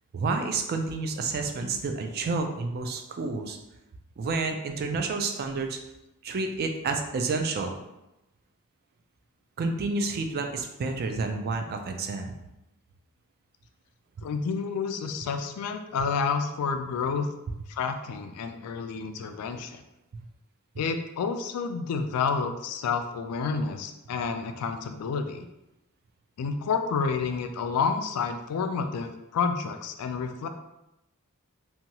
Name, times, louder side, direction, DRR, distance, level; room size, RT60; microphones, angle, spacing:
voice 1, 0.1-3.6 4.2-5.8 6.2-7.8 9.6-12.3, right 3 dB, 45° right, 5 dB, 0.3 m, -29 dB
voice 2, 14.2-17.3 17.7-19.8 20.8-25.5 26.4-30.5, left 5 dB, 80° left, 7 dB, 0.3 m, -29 dB
2.8 x 2.2 x 2.8 m, 0.91 s
head